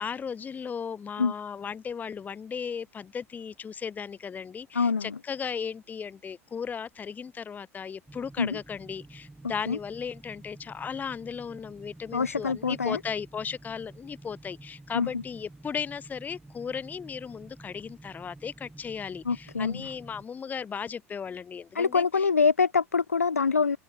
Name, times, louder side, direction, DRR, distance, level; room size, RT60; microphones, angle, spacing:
voice 1, 0.0-22.3, left 6 dB, 20° left, 1.2 m, -36 dB
voice 2, 4.7-5.2 8.4-8.6 9.7-9.8 12.1-13.0 14.9-15.1 19.3-19.8 21.8-23.8, left 5 dB, 80° left, 0.4 m, -25 dB
sound 1, 8.1-20.3, right 2 dB, 5° right, 6.5 m, -50 dB
figure-of-eight pair, 75°, 8 cm